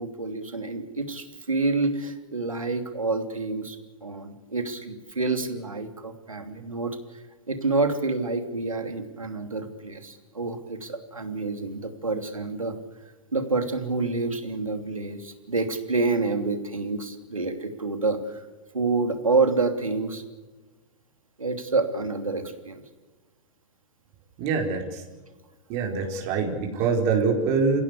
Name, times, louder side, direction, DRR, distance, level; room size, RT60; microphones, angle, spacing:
voice 1, 0.0-3.8 4.0-7.0 7.5-12.8 13.3-18.5 18.7-20.2 21.4-22.8, right 3 dB, 85° right, 7 dB, 3.0 m, -28 dB
voice 2, 24.4-25.0 25.7-27.8, right 4 dB, 45° right, 2 dB, 4.8 m, -24 dB
29.5 x 16.0 x 8.3 m, 1.2 s
figure-of-eight pair, 100°, 17 cm